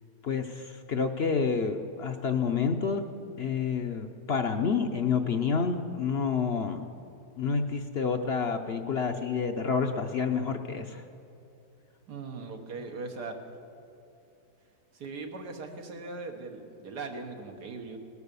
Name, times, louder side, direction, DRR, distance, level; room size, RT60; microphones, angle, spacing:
voice 1, 0.2-3.1 3.4-6.8 7.4-11.0, left 5 dB, 55° left, 6 dB, 0.7 m, -29 dB
voice 2, 12.1-13.4 14.9-18.0, right 3 dB, 90° right, 3 dB, 1.9 m, -39 dB
18.0 x 9.5 x 6.8 m, 2.7 s
omnidirectional pair, 1.7 m